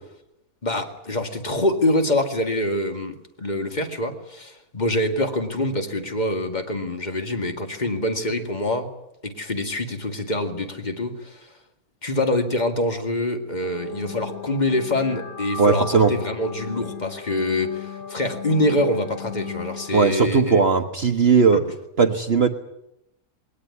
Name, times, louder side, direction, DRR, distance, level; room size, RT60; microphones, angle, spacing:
voice 1, 0.6-8.9 9.2-11.5 12.0-20.6 21.5-21.6, left 1 dB, 30° left, 5 dB, 2.3 m, -25 dB
sound 1, 13.6-20.0, left 7 dB, 80° left, 2.0 m, -36 dB
voice 2, 15.6-16.1 19.9-21.6 22.0-22.5, right 5 dB, 45° right, 7 dB, 1.3 m, -18 dB
20.5 x 18.5 x 9.7 m, 0.83 s
omnidirectional pair, 1.5 m